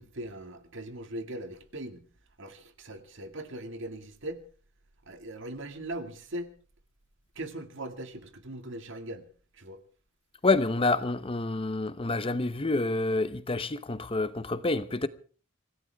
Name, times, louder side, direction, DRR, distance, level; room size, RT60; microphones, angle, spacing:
voice 1, 0.0-2.1 2.4-4.4 5.1-6.5 7.4-9.3 9.5-9.8, right 1 dB, 65° right, 2.1 m, -40 dB
voice 2, 10.4-15.1, left 3 dB, 25° left, 0.8 m, -28 dB
25.5 x 16.5 x 3.5 m
head